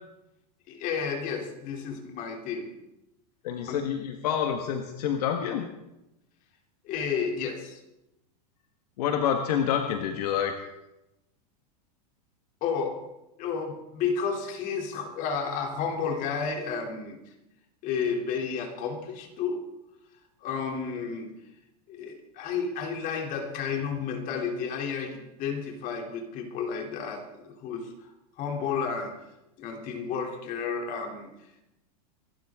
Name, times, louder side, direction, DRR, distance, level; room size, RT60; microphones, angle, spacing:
voice 1, 0.7-2.7 3.7-3.8 6.8-7.8 12.6-13.0 13.4-17.2 17.8-19.6 20.4-21.3 21.9-28.1 28.4-29.1 29.6-31.3, left 6 dB, 40° left, 2 dB, 3.1 m, -31 dB
voice 2, 3.4-5.7 9.0-10.5, left 8 dB, 70° left, 5 dB, 1.6 m, -27 dB
26.0 x 12.5 x 3.7 m, 0.92 s
supercardioid pair, 135°, 21 cm